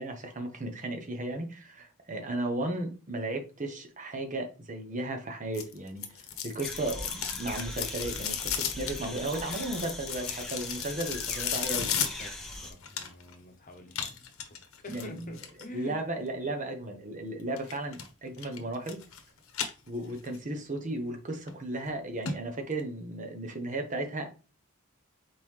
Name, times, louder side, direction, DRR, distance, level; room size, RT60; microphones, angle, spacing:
voice 1, 0.0-11.9 14.9-15.3 15.7-19.0 19.9-24.3, right 2 dB, 40° right, 0.9 m, -35 dB
sound 1, 5.5-13.3 13.9-15.6 17.6-18.1 18.4-19.2 19.5-20.4 20.8-20.9 21.5-21.6 21.9-22.0 22.3-22.4 22.7-22.8, left 8 dB, 80° left, 0.9 m, -35 dB
sound 2, 6.6-12.7, left 1 dB, ahead, 0.8 m, -41 dB
voice 2, 11.7-14.3 14.8-16.0, left 1 dB, 40° left, 0.9 m, -46 dB
4.3 x 3.8 x 3.2 m
head